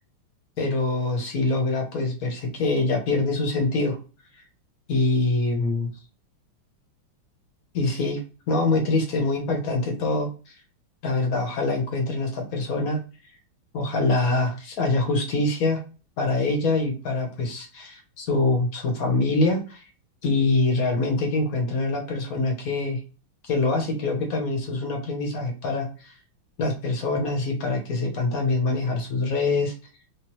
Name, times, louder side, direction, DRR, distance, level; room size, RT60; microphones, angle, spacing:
voice 1, 0.6-4.0 4.9-5.9 7.7-8.2 8.5-10.5 11.0-13.0 13.7-15.8 16.2-19.8 20.2-23.0 23.4-26.1 26.6-29.7, left 2 dB, 55° left, 3 dB, 1.0 m, -24 dB
3.2 x 3.2 x 3.0 m, 0.34 s
omnidirectional pair, 2.4 m